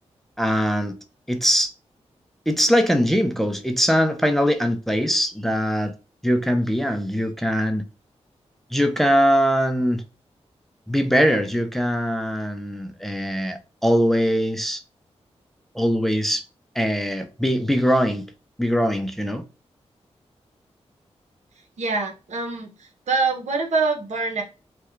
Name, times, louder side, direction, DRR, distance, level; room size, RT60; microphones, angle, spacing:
voice 1, 0.4-1.0 1.3-1.7 2.5-5.9 6.2-7.9 8.7-10.0 10.9-14.8 15.7-16.4 16.8-18.3 18.6-19.4, equal, ahead, 0.5 m, -21 dB
voice 2, 21.8-24.4, right 3 dB, 85° right, 0.9 m, -25 dB
3.4 x 2.3 x 3.1 m
cardioid pair, 70°, 12 cm